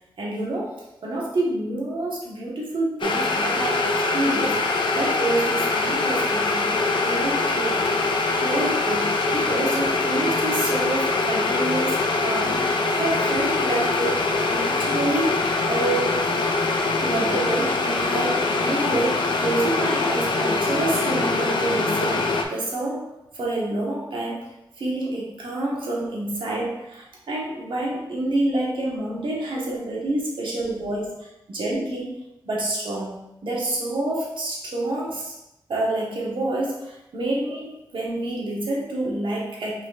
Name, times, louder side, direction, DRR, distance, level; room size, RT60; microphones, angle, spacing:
voice 1, 0.2-4.6 4.9-8.1 8.4-12.0 12.2-16.2 17.0-24.5 24.8-32.1 32.4-33.2 33.4-35.3 35.7-39.9, right 2 dB, 90° right, -4 dB, 1.2 m, -28 dB
sound 1, 3.0-22.4, left 3 dB, 75° left, 0.5 m, -23 dB
5.0 x 3.9 x 2.4 m, 0.87 s
wide cardioid pair, 125°, 8 cm